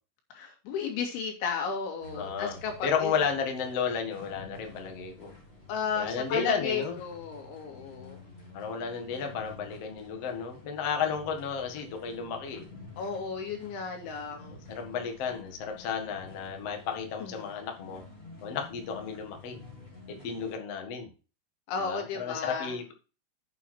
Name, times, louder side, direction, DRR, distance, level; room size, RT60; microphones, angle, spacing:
voice 1, 0.3-3.1 5.7-8.2 13.0-14.6 17.2-17.6 21.7-22.8, left 5 dB, 80° left, 2 dB, 4.8 m, -34 dB
sound 1, 2.0-20.5, left 2 dB, 15° left, 2.9 m, -50 dB
voice 2, 2.1-2.6 2.8-5.3 6.0-7.0 8.5-12.7 14.5-18.0 18.4-19.6 20.1-21.1 21.8-22.9, left 6 dB, 55° left, 4 dB, 1.8 m, -33 dB
9.0 x 7.1 x 4.6 m, 0.34 s
omnidirectional pair, 5.3 m